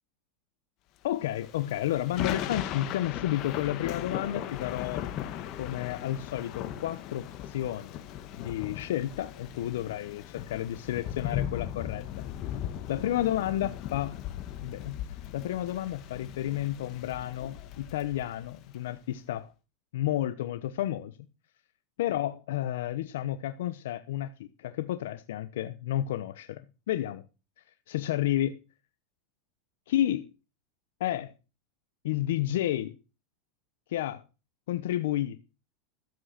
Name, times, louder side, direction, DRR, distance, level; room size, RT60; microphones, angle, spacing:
voice 1, 1.0-5.0 5.6-8.0 8.3-12.0 12.9-14.1 14.6-19.5 19.9-21.2 22.0-26.6 26.9-27.2 27.9-28.6 29.9-30.3 31.0-31.3 32.0-33.0 33.9-34.2 34.7-35.4, left 13 dB, 80° left, 0.9 m, -31 dB
Thunder / Rain, 1.3-18.8, left 11 dB, 50° left, 2.0 m, -38 dB
13.0 x 7.8 x 5.9 m
supercardioid pair, 115°, 0 cm